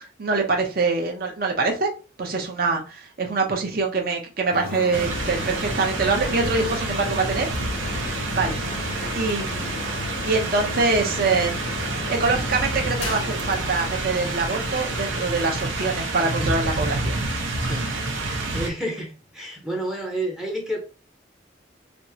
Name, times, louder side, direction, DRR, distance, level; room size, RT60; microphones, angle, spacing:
voice 1, 0.2-1.9 2.2-7.5 8.0-8.6 9.1-9.8 10.2-11.5 12.1-17.2, right 4 dB, 50° right, 2 dB, 0.7 m, -24 dB
sound 1, 4.5-15.5, left 3 dB, 85° left, 0.5 m, -35 dB
sound 2, 4.9-18.7, right 2 dB, 85° right, 0.7 m, -28 dB
voice 2, 16.2-16.6 17.6-17.9 18.5-20.8, right 1 dB, 5° right, -1 dB, 0.6 m, -30 dB
3.3 x 2.0 x 2.7 m, 0.34 s
head